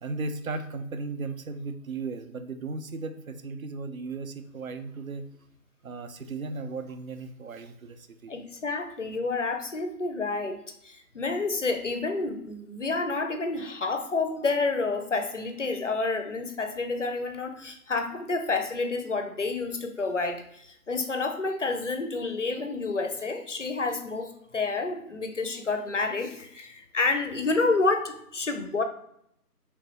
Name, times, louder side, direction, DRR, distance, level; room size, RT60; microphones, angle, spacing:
voice 1, 0.0-5.2 5.8-8.3, right 3 dB, 65° right, 9 dB, 0.5 m, -36 dB
voice 2, 8.3-10.6 10.8-28.8, left 3 dB, 55° left, 6 dB, 0.5 m, -29 dB
3.2 x 3.1 x 3.0 m, 0.74 s
figure-of-eight pair, 170°, 46 cm